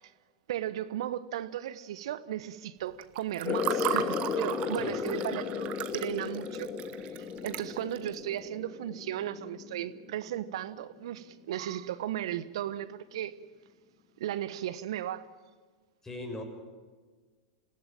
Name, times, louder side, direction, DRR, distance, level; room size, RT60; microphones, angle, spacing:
voice 1, 0.5-6.8 7.2-13.4 14.2-15.3, right 11 dB, 65° right, 1.2 m, -36 dB
Water / Fill (with liquid), 3.0-8.1, right 11 dB, 40° right, 1.5 m, -36 dB
sound 1, 3.4-10.6, left 6 dB, 30° left, 1.5 m, -35 dB
voice 2, 16.0-16.4, left 2 dB, 15° left, 6.5 m, -39 dB
27.0 x 16.5 x 8.9 m
hypercardioid pair, 95°, 3 cm